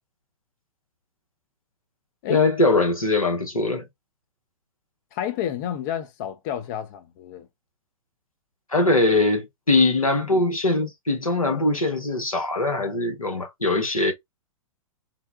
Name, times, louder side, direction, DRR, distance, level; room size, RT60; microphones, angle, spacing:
voice 1, 2.3-3.8 8.7-14.1, left 2 dB, 85° left, 1.0 m, -21 dB
voice 2, 5.1-7.5, left 10 dB, 35° left, 0.5 m, -30 dB
3.9 x 2.1 x 2.4 m
figure-of-eight pair, 110°, 18 cm